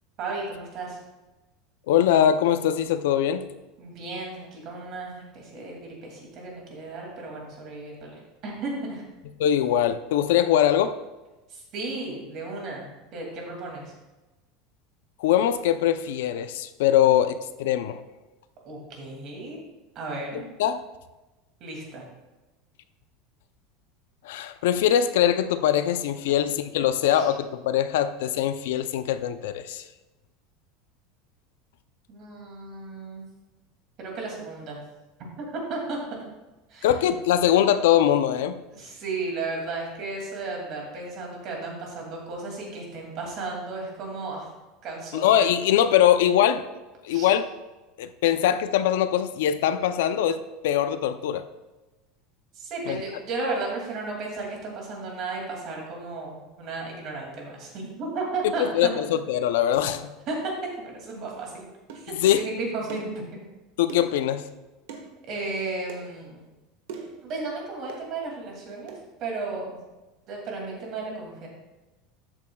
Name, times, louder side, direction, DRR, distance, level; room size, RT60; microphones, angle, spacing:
voice 1, 0.2-1.0 3.8-9.0 11.5-13.9 18.6-19.6 19.9-20.5 21.6-22.1 27.1-27.3 32.1-33.3 34.0-34.8 35.4-36.0 36.7-36.9 38.7-44.5 44.8-45.3 47.1-47.3 52.5-58.9 60.3-60.4 60.8-61.7 61.9-63.5 65.3-66.4 67.2-68.9 69.2-69.8 70.3-71.5, right 3 dB, 35° right, -1 dB, 2.4 m, -34 dB
voice 2, 1.9-3.5 9.4-11.0 15.2-18.0 20.3-20.8 24.2-29.8 36.8-38.6 45.1-46.6 47.0-47.5 48.0-51.4 52.9-53.0 58.4-60.1 62.2-62.5 63.8-64.5, left 10 dB, 85° left, 11 dB, 0.5 m, -22 dB
sound 1, 61.9-62.1 62.9-63.2 63.9-64.2 64.9-65.1 65.9-66.1 66.9-67.2 67.9-68.1 68.9-69.0, right 5 dB, 80° right, 1.4 m, -40 dB
12.5 x 8.7 x 2.3 m, 1.1 s
supercardioid pair, 180°, 0 cm